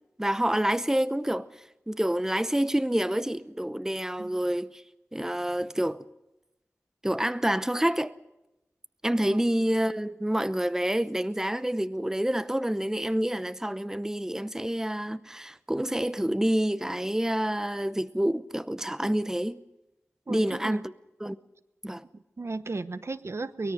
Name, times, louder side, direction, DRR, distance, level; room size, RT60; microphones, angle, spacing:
voice 1, 0.2-1.5 1.9-4.8 5.1-6.0 7.0-8.1 9.0-19.6 20.3-20.8 21.2-21.4 21.8-22.0, right 1 dB, 10° right, 0.8 m, -27 dB
voice 2, 20.3-20.8 22.1-23.7, right 3 dB, 55° right, 0.9 m, -34 dB
23.5 x 21.0 x 6.4 m
wide cardioid pair, 60°, 5 cm